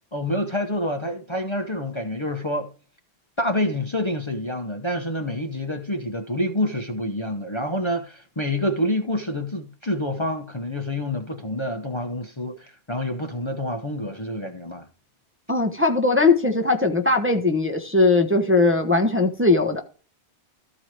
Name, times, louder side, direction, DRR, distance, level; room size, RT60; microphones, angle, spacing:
voice 1, 0.1-2.7 3.4-14.9, left 1 dB, 25° left, 1.0 m, -27 dB
voice 2, 15.5-19.8, left 3 dB, 10° right, 1.0 m, -19 dB
14.0 x 4.7 x 4.5 m
omnidirectional pair, 1.1 m